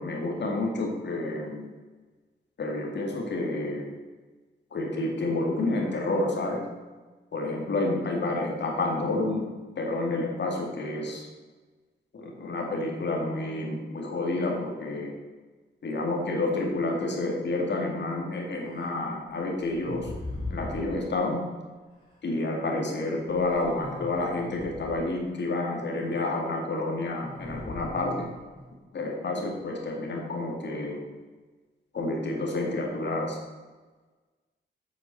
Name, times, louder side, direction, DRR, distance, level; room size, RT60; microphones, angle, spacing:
voice 1, 0.0-1.7 2.6-3.9 4.7-6.6 7.3-9.4 9.8-11.3 12.1-15.1 15.8-20.1 20.5-21.4 22.2-28.2 28.9-31.0 31.9-33.4, left 2 dB, 75° left, 0 dB, 2.2 m, -29 dB
sound 1, 18.7-18.9 19.6-20.9 22.1-22.2 23.3-25.1 27.2-28.7, left 1 dB, 25° left, 3.7 m, -39 dB
8.4 x 8.1 x 6.8 m, 1.3 s
wide cardioid pair, 145°, 19 cm